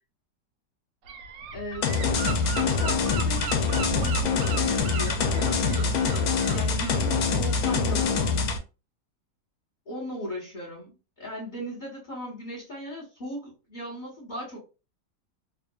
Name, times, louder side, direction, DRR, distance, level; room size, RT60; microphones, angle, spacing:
Gull seagull / Wind, 1.1-8.3, right 4 dB, 85° right, 1.2 m, -37 dB
voice 1, 1.5-1.9 2.6-6.0 6.5-8.4 9.9-14.6, equal, 30° left, -5 dB, 1.2 m, -38 dB
sound 1, 1.8-8.6, left 5 dB, 70° left, 1.0 m, -25 dB
3.0 x 2.4 x 2.3 m, 0.31 s
omnidirectional pair, 1.8 m